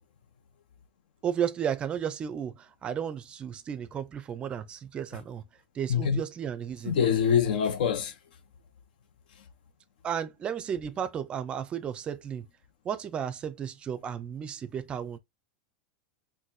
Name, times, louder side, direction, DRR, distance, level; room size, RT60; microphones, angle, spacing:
voice 1, 1.2-5.4 5.7-7.0 10.0-12.5 12.8-15.2, right 8 dB, 20° right, 0.4 m, -33 dB
voice 2, 6.9-8.1, left 7 dB, 80° left, 0.7 m, -24 dB
4.0 x 2.2 x 2.6 m
supercardioid pair, 150°, 5 cm